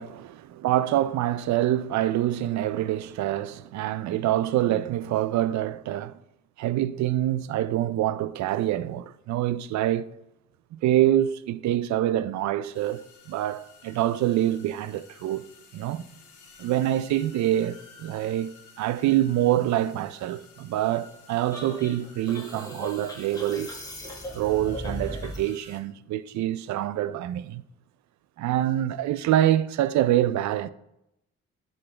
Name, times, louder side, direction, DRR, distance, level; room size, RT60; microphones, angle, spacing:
voice 1, 0.0-6.2 6.6-10.1 10.7-15.5 15.7-16.1 16.6-23.7 24.3-27.6 28.4-30.7, right 13 dB, 65° right, 0.4 m, -26 dB
sound 1, 12.7-25.8, left 5 dB, 80° left, 1.4 m, -53 dB
sound 2, 21.5-25.5, equal, 10° left, 1.3 m, -37 dB
11.5 x 3.9 x 3.3 m
cardioid pair, 90°, 30 cm